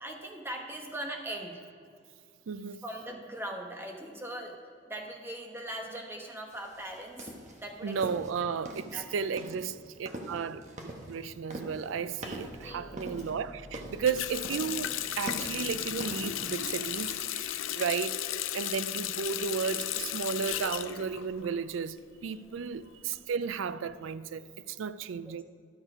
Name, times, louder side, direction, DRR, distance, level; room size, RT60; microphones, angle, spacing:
voice 1, 0.0-1.6 2.8-4.5 4.9-7.3 7.6-8.0 8.9-9.1 10.3-10.4 12.6-13.0 22.3-22.7 25.2-25.4, right 1 dB, 10° right, 1.0 m, -40 dB
voice 2, 2.5-2.8 7.8-10.6 11.1-18.2 18.5-22.0 22.2-25.4, right 6 dB, 80° right, 0.4 m, -34 dB
sound 1, 6.5-16.2, right 1 dB, 35° right, 1.1 m, -43 dB
sound 2, 11.9-17.3, equal, 65° left, 1.8 m, -52 dB
Water tap faucet, 14.1-21.8 22.1-23.2, left 11 dB, 85° left, 0.5 m, -35 dB
12.0 x 6.7 x 4.9 m
head